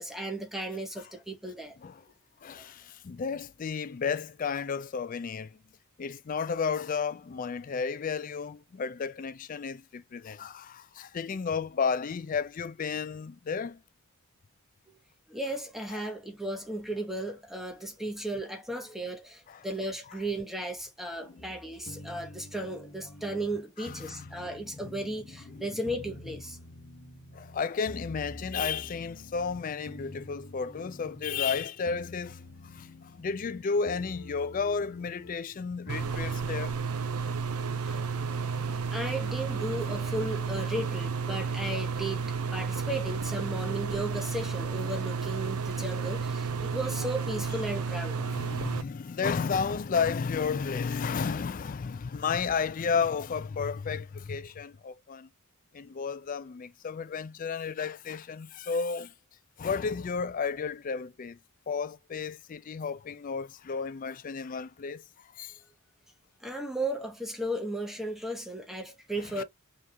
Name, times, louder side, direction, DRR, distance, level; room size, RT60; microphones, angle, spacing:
voice 1, 0.0-1.8 15.3-26.6 37.8-38.4 38.9-48.4 66.4-69.4, right 1 dB, ahead, 1.0 m, -35 dB
voice 2, 2.4-5.6 6.0-13.8 15.9-16.1 19.5-19.7 21.3-21.5 22.5-22.6 23.8-24.4 24.8-25.0 25.4-25.7 27.3-36.8 48.2-55.3 55.7-59.1 59.6-61.4 61.7-65.6 69.3-69.4, left 5 dB, 40° left, 0.3 m, -33 dB
sound 1, 21.4-25.6 25.8-27.6 27.8-31.6 31.8-33.6 33.8-35.3 35.8-36.4, left 1 dB, 70° left, 1.5 m, -47 dB
sound 2, 35.9-48.8, right 5 dB, 85° right, 0.7 m, -32 dB
5.5 x 3.0 x 2.3 m
head